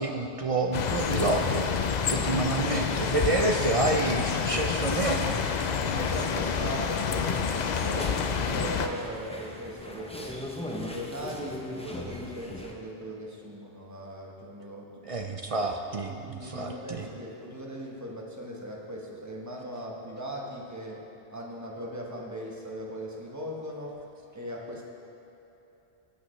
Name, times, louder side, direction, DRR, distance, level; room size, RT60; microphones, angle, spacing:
voice 1, 0.0-1.7 2.1-5.4 15.0-17.1, right 2 dB, 60° right, 3 dB, 0.3 m, -28 dB
sound 1, 0.7-8.9, left 6 dB, 60° left, 0.4 m, -28 dB
voice 2, 2.1-2.5 5.8-10.4 10.7-14.9 16.1-24.0 24.3-24.8, equal, 15° right, -2 dB, 1.1 m, -39 dB
sound 2, 4.9-12.7, left 1 dB, 5° left, 0.5 m, -40 dB
14.0 x 8.4 x 3.2 m, 3.0 s
omnidirectional pair, 1.3 m